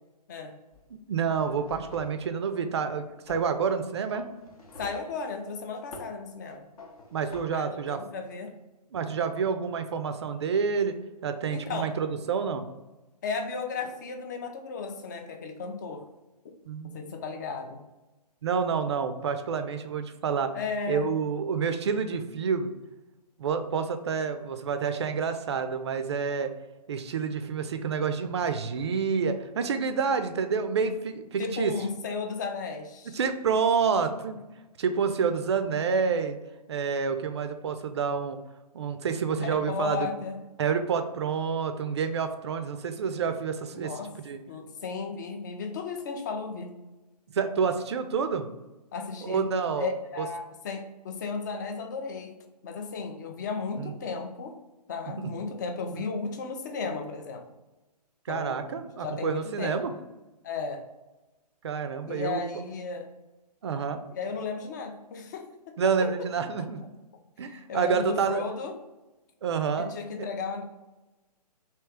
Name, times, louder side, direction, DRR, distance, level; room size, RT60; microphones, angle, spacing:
sound 1, 0.7-0.9 1.3-2.3 3.3-3.5 4.1-5.1 5.9-6.2 6.8-7.4, left 2 dB, 60° left, 0.8 m, -47 dB
voice 1, 1.1-4.3 7.1-8.0 8.9-11.0 11.2-12.6 16.7-17.1 18.4-20.5 20.9-22.7 23.4-26.5 26.9-31.7 33.1-34.4 34.8-36.4 36.7-38.4 38.7-40.1 40.6-44.4 47.3-48.5 49.2-49.9 50.2-50.3 53.8-53.9 55.1-55.3 55.9-56.1 58.3-59.9 61.6-62.5 63.6-64.0 65.8-66.8 67.4-68.4 69.4-69.9, right 6 dB, 40° right, 8 dB, 0.4 m, -28 dB
voice 2, 4.8-6.7 7.5-8.5 11.5-11.9 13.2-16.0 16.8-17.8 20.5-21.1 31.4-33.2 39.4-40.4 43.7-44.1 44.5-46.8 48.9-49.5 49.8-52.4 52.6-54.6 54.9-57.5 58.3-58.7 59.0-59.8 60.4-60.8 62.1-63.1 64.1-66.1 67.4-68.8 69.8-70.6, left 4 dB, 25° left, 5 dB, 0.4 m, -35 dB
3.2 x 2.8 x 3.3 m, 1.1 s
figure-of-eight pair, 130°, 21 cm